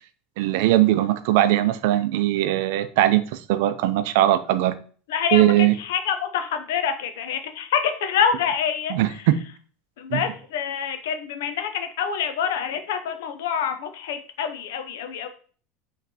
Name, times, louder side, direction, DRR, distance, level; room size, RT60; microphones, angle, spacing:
voice 1, 0.4-4.7 5.3-5.7 8.9-9.4 10.1-10.2, right 14 dB, 70° right, 12 dB, 0.4 m, -20 dB
voice 2, 5.1-9.3 10.0-15.3, left 7 dB, 75° left, 8 dB, 0.6 m, -26 dB
4.2 x 3.1 x 2.7 m, 0.42 s
hypercardioid pair, 90°, 0 cm